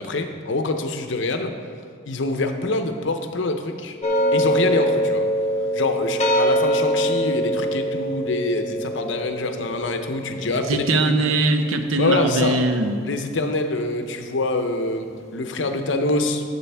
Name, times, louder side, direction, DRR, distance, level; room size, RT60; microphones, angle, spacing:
voice 1, 0.0-1.5 2.0-4.0 4.3-5.3 5.7-11.3 12.0-12.6 13.1-16.4, left 2 dB, 60° left, 6 dB, 0.7 m, -25 dB
sound 1, 4.0-13.2, equal, 35° left, 0.8 m, -24 dB
voice 2, 10.7-13.0, right 2 dB, 85° right, 7 dB, 0.7 m, -21 dB
11.5 x 6.9 x 3.4 m, 2.2 s
head